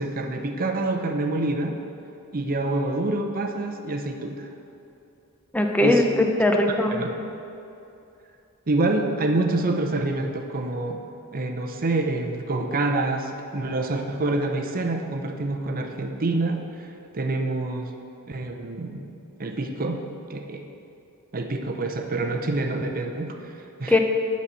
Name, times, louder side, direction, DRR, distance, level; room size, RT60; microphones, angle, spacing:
voice 1, 0.0-1.7 2.3-4.5 5.8-6.1 6.9-7.1 8.7-11.0 11.3-17.9 18.3-19.1 19.4-20.0 20.3-20.6 21.3-24.0, right 2 dB, 40° right, 4 dB, 0.7 m, -27 dB
voice 2, 5.5-6.9 23.9-24.0, left 1 dB, 5° left, 3 dB, 0.6 m, -20 dB
9.6 x 4.2 x 7.4 m, 2.7 s
head